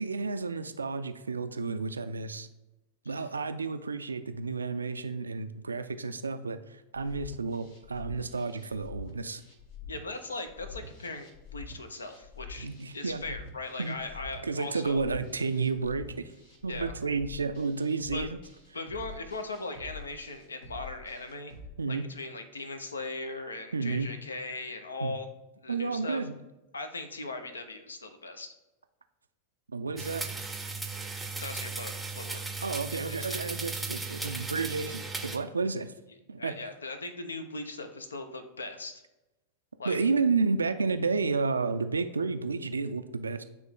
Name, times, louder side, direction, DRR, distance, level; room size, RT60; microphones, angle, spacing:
voice 1, 0.0-2.5 3.1-9.4 12.6-13.2 13.8-14.1 14.4-16.3 16.6-18.4 21.8-22.1 23.7-24.1 25.0-25.1 25.7-26.3 29.7-30.2 32.6-35.9 36.3-36.5 39.8-43.4, right 4 dB, 75° right, 10 dB, 0.3 m, -31 dB
sound 1, 6.9-21.7, left 5 dB, 55° left, 1.4 m, -47 dB
voice 2, 9.9-12.7 12.9-15.0 16.7-16.9 18.1-18.3 18.7-21.5 21.9-25.3 25.6-26.2 26.7-28.5 31.4-32.7 33.2-33.4 36.4-39.0 39.8-40.0, left 2 dB, 75° left, 8 dB, 0.7 m, -39 dB
sound 2, 30.0-35.4, right 4 dB, 5° right, 0.6 m, -36 dB
9.3 x 3.1 x 3.5 m, 1.0 s
figure-of-eight pair, 90°, 0 cm